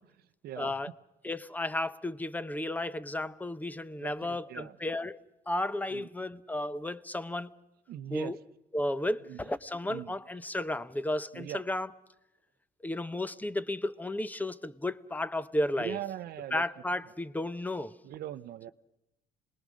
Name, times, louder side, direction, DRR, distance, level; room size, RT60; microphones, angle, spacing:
voice 1, 0.6-0.9 1.2-5.2 5.5-7.5 8.1-8.4 8.7-11.9 12.8-16.0 16.5-17.9, left 1 dB, 10° left, 0.8 m, -33 dB
voice 2, 4.0-4.8 5.9-6.1 7.9-8.3 9.3-9.4 9.9-10.1 11.3-11.6 15.8-16.6 18.0-18.7, right 12 dB, 65° right, 0.7 m, -40 dB
27.0 x 20.0 x 6.3 m
cardioid pair, 110°, 17 cm